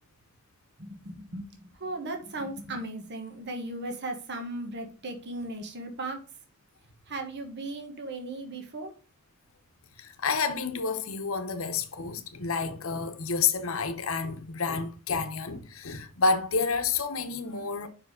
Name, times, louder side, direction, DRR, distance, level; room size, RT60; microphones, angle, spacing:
voice 1, 0.8-6.2 7.1-8.9, right 2 dB, 55° right, 1.4 m, -37 dB
voice 2, 10.0-17.9, left 4 dB, 70° left, 0.9 m, -29 dB
5.4 x 4.8 x 4.8 m
head